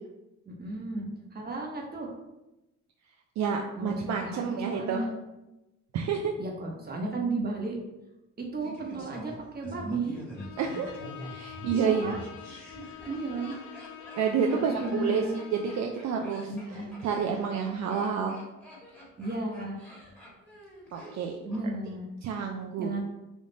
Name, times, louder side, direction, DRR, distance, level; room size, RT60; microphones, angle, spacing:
voice 1, 0.5-2.1 3.7-5.1 6.4-7.8 8.4-10.2 11.7-12.2 13.1-13.5 14.5-15.4 16.5-16.9 19.2-19.8 21.4-22.0 22.8-23.0, right 2 dB, 30° right, 0 dB, 1.0 m, -34 dB
voice 2, 3.4-5.1 5.9-6.3 10.6-10.9 11.2-12.2 14.1-16.5 17.0-18.4 20.9-21.4 22.2-22.9, right 6 dB, 65° right, 2 dB, 0.4 m, -29 dB
Laughter, 8.6-21.6 21.9-22.0, equal, 5° left, 1.3 m, -46 dB
Bowed string instrument, 10.4-16.0, left 10 dB, 75° left, 0.5 m, -46 dB
3.6 x 2.4 x 3.8 m, 0.97 s
cardioid pair, 90°, 30 cm